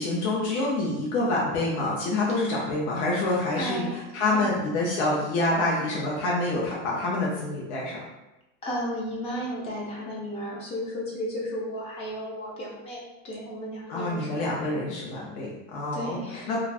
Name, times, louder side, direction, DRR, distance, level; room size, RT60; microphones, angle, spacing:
voice 1, 0.0-8.0 13.9-16.2 16.5-16.6, left 2 dB, 60° left, -4 dB, 0.7 m, -27 dB
voice 2, 3.6-4.5 8.6-14.7 15.9-16.6, equal, 15° left, -4 dB, 0.4 m, -34 dB
2.5 x 2.3 x 3.2 m, 0.98 s
supercardioid pair, 165°, 38 cm